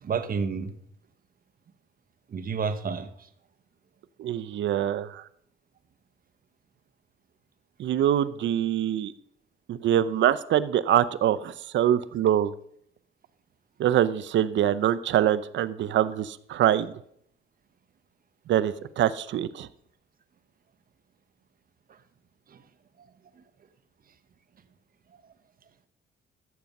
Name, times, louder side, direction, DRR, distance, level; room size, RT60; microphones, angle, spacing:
voice 1, 0.0-0.7 2.3-3.1 22.5-22.6, right 5 dB, 45° right, 12 dB, 1.1 m, -29 dB
voice 2, 4.2-5.2 7.8-9.1 9.7-12.5 13.8-16.9 18.5-19.7, right 11 dB, 70° right, 16 dB, 0.7 m, -24 dB
14.0 x 7.0 x 5.3 m, 0.69 s
cardioid pair, 90°, 20 cm